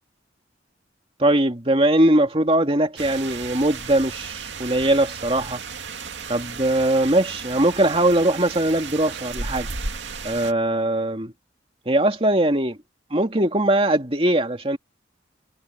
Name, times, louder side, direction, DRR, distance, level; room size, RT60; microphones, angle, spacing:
voice 1, 1.2-5.6 6.3-9.7 10.2-11.3 11.9-12.8 13.1-14.8, right 1 dB, 30° right, 2.5 m, -20 dB
sound 1, 3.0-10.5, right 5 dB, 70° right, 2.4 m, -34 dB
head